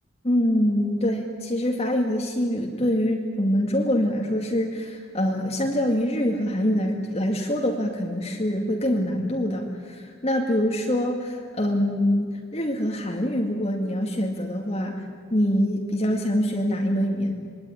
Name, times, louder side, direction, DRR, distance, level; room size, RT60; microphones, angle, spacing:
voice 1, 0.2-15.0 15.3-17.3, equal, 30° left, 1 dB, 2.2 m, -24 dB
27.0 x 21.5 x 10.0 m, 2.1 s
head